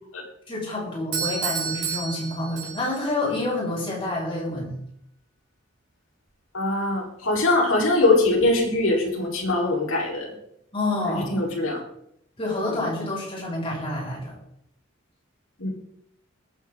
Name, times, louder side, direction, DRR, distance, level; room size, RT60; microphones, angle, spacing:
voice 1, 0.5-4.8 10.7-11.3 12.4-14.4, left 2 dB, 25° left, -4 dB, 6.1 m, -28 dB
Doorbell, 1.1-3.1, right 6 dB, 75° right, 4.9 m, -30 dB
voice 2, 6.5-10.3 11.1-11.8 15.6-15.7, left 2 dB, 80° left, -1 dB, 4.4 m, -22 dB
21.0 x 9.7 x 3.9 m, 0.73 s
head